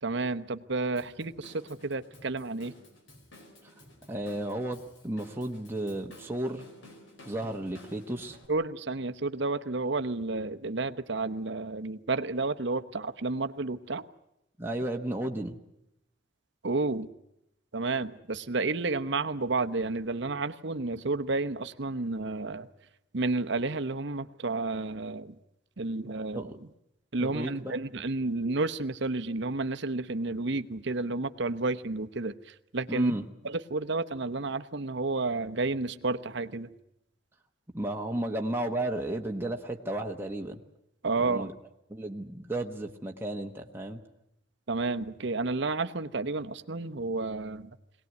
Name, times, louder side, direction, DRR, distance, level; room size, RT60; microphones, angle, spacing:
voice 1, 0.0-2.7 8.5-14.0 16.6-17.1 17.7-22.7 23.1-25.4 25.8-26.5 27.1-33.2 33.4-36.7 41.0-41.5 44.7-47.7, right 3 dB, 60° right, 9 dB, 0.9 m, -31 dB
Drum kit / Drum, 1.0-8.5, left 1 dB, 60° left, 4.6 m, -53 dB
voice 2, 4.1-4.8 5.0-6.6 7.2-8.4 14.6-15.6 26.3-26.5 27.2-27.5 32.9-33.2 37.7-40.6 41.2-41.5 41.9-44.0, right 1 dB, 10° right, 1 dB, 1.2 m, -33 dB
22.0 x 18.5 x 9.4 m, 0.85 s
head